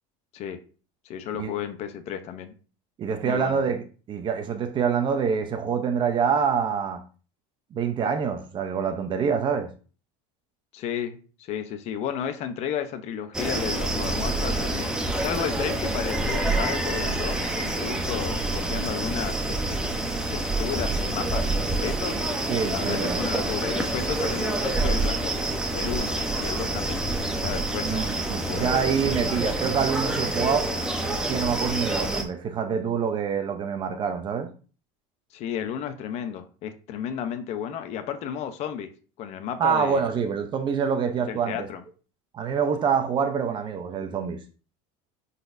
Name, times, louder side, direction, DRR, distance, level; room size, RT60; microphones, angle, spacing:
voice 1, 1.0-2.5 3.2-3.6 10.7-14.9 15.2-19.9 20.3-22.2 22.7-27.0 27.4-28.8 35.3-38.9 39.2-40.1 41.3-41.8, left 9 dB, 45° left, 0.8 m, -33 dB
voice 2, 3.0-7.0 7.7-9.7 22.5-23.2 27.8-30.7 31.0-34.5 39.6-41.7 42.3-44.4, right 6 dB, 30° right, 0.8 m, -26 dB
sound 1, 13.3-32.2, right 2 dB, 5° right, 0.9 m, -27 dB
10.5 x 4.2 x 2.7 m
cardioid pair, 155°, 16 cm